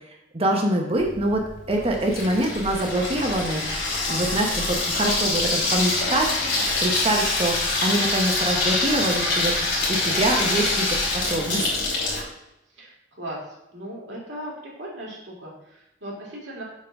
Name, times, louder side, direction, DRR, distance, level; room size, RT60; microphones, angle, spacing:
voice 1, 0.3-3.6 4.1-6.3 6.8-9.6 9.9-11.8, right 1 dB, 30° right, 1 dB, 0.9 m, -24 dB
Water tap faucet / Sink (filling or washing), 1.0-12.2, left 2 dB, 65° left, 2.7 m, -25 dB
voice 2, 13.7-14.5 14.8-15.5 16.0-16.6, right 1 dB, 65° right, -5 dB, 2.5 m, -36 dB
7.3 x 3.9 x 5.8 m, 0.90 s
head